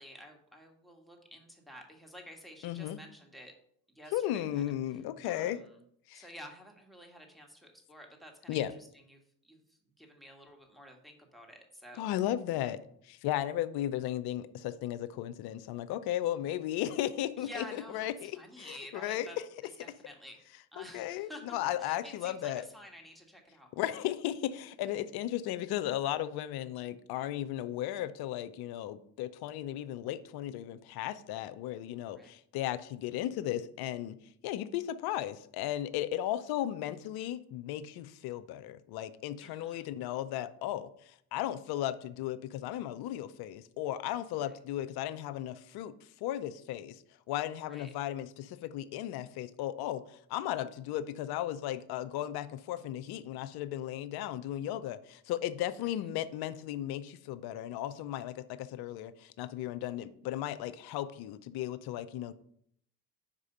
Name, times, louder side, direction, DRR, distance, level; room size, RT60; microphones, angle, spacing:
voice 1, 0.0-3.5 3.9-4.7 5.2-5.8 6.1-12.0 12.6-12.7 17.4-19.4 19.8-23.7 32.1-32.3 39.4-39.9 44.4-44.6 47.7-47.9 55.8-56.0, equal, ahead, 1 dB, 1.6 m, -51 dB
voice 2, 2.6-3.0 4.1-5.6 6.1-6.2 8.5-8.7 12.0-12.8 13.0-17.6 17.9-18.3 18.6-19.3 20.9-22.6 23.8-34.1 34.4-45.9 46.2-62.3, left 12 dB, 50° left, 14 dB, 0.6 m, -35 dB
5.2 x 4.8 x 5.5 m, 0.68 s
figure-of-eight pair, 50°, 48 cm